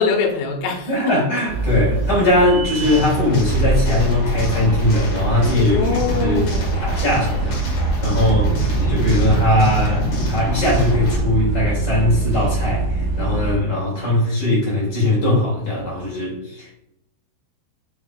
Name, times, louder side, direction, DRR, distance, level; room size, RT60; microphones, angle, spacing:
voice 1, 0.0-1.1 5.6-6.8, left 5 dB, 85° left, 1 dB, 3.8 m, -23 dB
voice 2, 0.9-6.4 6.8-16.7, left 1 dB, 30° left, -4 dB, 2.4 m, -20 dB
sound 1, 1.5-13.5, right 2 dB, 70° right, 1.9 m, -24 dB
sound 2, 2.8-11.2, equal, 60° left, 1.3 m, -26 dB
7.9 x 6.6 x 2.4 m, 0.79 s
omnidirectional pair, 5.5 m